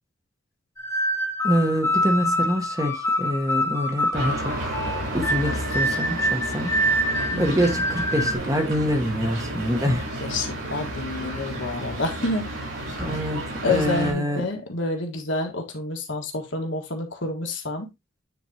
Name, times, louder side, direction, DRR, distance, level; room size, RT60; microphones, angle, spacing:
sound 1, 0.8-8.3, equal, 15° left, 1.1 m, -26 dB
voice 1, 1.4-4.8 5.1-6.7 7.0-10.1 13.0-14.4, equal, 15° right, 1.0 m, -25 dB
sound 2, 4.1-14.1, right 1 dB, 80° right, 4.6 m, -32 dB
voice 2, 10.2-12.5 13.6-17.9, left 2 dB, 60° left, 1.6 m, -28 dB
9.3 x 4.3 x 2.8 m
head